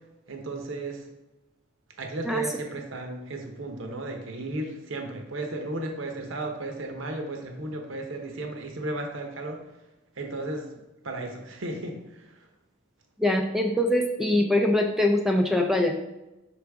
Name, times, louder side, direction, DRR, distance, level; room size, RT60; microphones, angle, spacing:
voice 1, 0.3-1.1 2.0-9.6 10.2-10.7 11.0-12.5, right 2 dB, 70° right, 3 dB, 0.8 m, -34 dB
voice 2, 13.2-15.9, left 1 dB, ahead, 2 dB, 0.3 m, -23 dB
5.7 x 5.0 x 3.4 m, 0.99 s
head